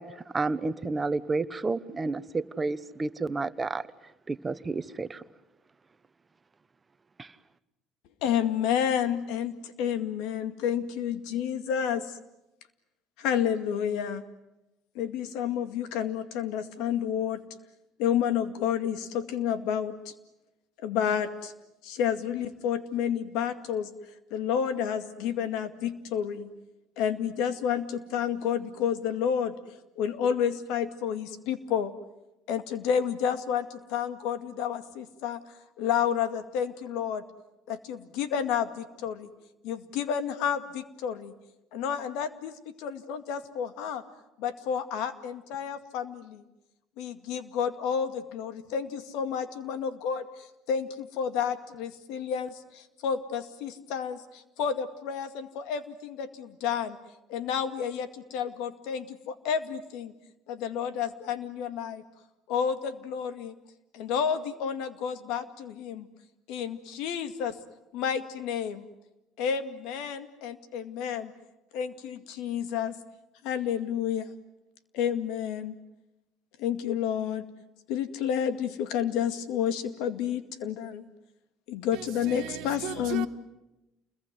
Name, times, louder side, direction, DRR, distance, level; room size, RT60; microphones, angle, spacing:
voice 1, 0.0-3.9 4.3-5.2 7.2-7.3, right 3 dB, 20° right, 1.1 m, -31 dB
voice 2, 8.2-12.2 13.2-14.2 14.9-17.4 18.0-20.1 20.8-21.5 21.8-23.9 24.3-26.5 27.0-29.6 30.0-31.9 32.5-35.4 35.8-37.2 37.7-39.3 39.6-41.3 41.7-44.0 44.4-46.4 47.0-57.0 57.3-60.1 60.5-62.0 62.5-63.5 63.9-66.1 66.5-67.6 67.9-68.9 69.4-71.3 71.7-73.0 73.4-74.3 74.9-75.8 76.6-77.4 77.9-81.1 81.7-83.3, left 8 dB, 80° left, 2.1 m, -30 dB
voice 3, 82.4-83.3, right 14 dB, 75° right, 1.3 m, -36 dB
29.0 x 22.0 x 9.5 m
cardioid pair, 110°, 0 cm